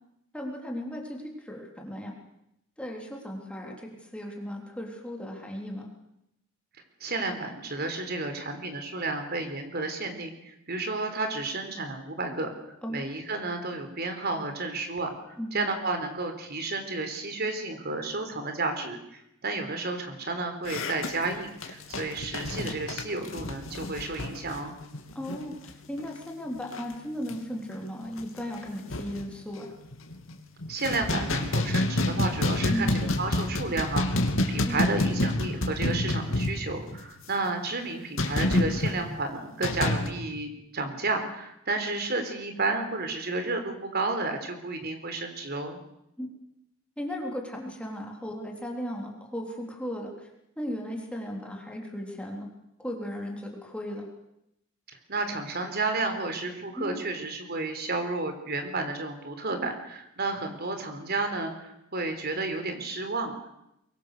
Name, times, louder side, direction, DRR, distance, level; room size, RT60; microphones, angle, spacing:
voice 1, 0.3-2.1 2.8-5.9 12.8-13.1 15.4-15.7 25.2-29.7 32.7-32.9 34.7-34.9 46.2-46.3 47.0-50.3 50.6-52.5 52.8-54.1 56.8-57.0 59.5-59.7, equal, 5° left, 0 dB, 3.6 m, -36 dB
voice 2, 7.0-12.5 12.9-24.7 30.7-34.1 34.5-45.8 54.9-63.5, right 3 dB, 50° right, 6 dB, 4.0 m, -32 dB
sound 1, 20.6-25.7 26.0-26.2 26.5-26.9 27.3-27.4 27.8-27.9 28.2-29.2 29.8-30.3 30.6-37.0 38.2-38.9 39.6-40.1, left 1 dB, 65° left, 2.8 m, -28 dB
23.5 x 23.0 x 6.8 m, 0.82 s
head